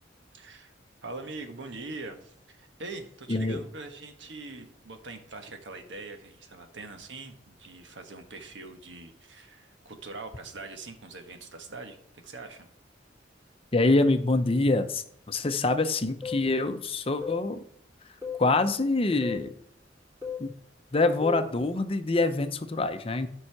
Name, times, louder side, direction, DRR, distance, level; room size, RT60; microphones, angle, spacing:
voice 1, 0.3-0.7 1.0-12.0 12.2-12.7, right 3 dB, 80° right, 6 dB, 1.3 m, -43 dB
voice 2, 3.3-3.6 13.7-17.6 18.4-19.5 20.4-20.5 20.9-23.3, left 2 dB, 30° left, 9 dB, 0.6 m, -25 dB
sound 1, 16.2-16.5 17.2-17.5 18.2-18.5 19.2-19.5 20.2-20.5 21.2-21.5, left 5 dB, 15° right, 2.4 m, -35 dB
11.5 x 5.5 x 4.7 m, 0.66 s
head